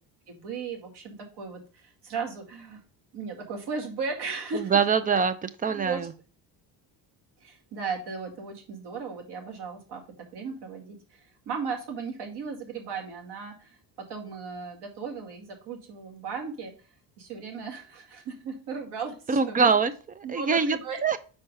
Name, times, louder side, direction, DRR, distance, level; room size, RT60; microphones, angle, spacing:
voice 1, 0.3-2.8 3.1-4.9 5.7-6.0 7.4-10.0 10.3-13.8 14.1-16.7 17.2-19.7 20.2-21.0, right 5 dB, 65° right, 1 dB, 2.2 m, -36 dB
voice 2, 4.5-6.1 19.3-21.2, right 5 dB, 20° right, 12 dB, 0.4 m, -24 dB
5.4 x 4.5 x 4.8 m, 0.38 s
cardioid pair, 130°, 44 cm